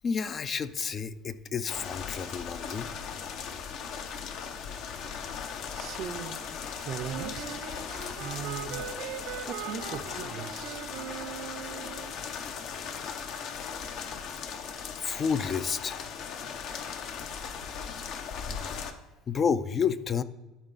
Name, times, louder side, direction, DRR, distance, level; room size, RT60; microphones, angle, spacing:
voice 1, 0.0-2.9 15.0-16.0 16.5-16.6 19.3-20.2, left 6 dB, 35° left, 13 dB, 0.4 m, -30 dB
sound 1, 1.7-18.9, left 6 dB, 60° left, 0.8 m, -38 dB
voice 2, 5.7-6.4 6.8-7.6 8.2-8.9 9.4-10.8, right 9 dB, 55° right, 11 dB, 0.5 m, -39 dB
Wind instrument woodwind instrument, 7.1-12.1, right 9 dB, 80° right, 1.0 m, -40 dB
12.5 x 4.8 x 4.0 m, 1.1 s
supercardioid pair, 115°, 0 cm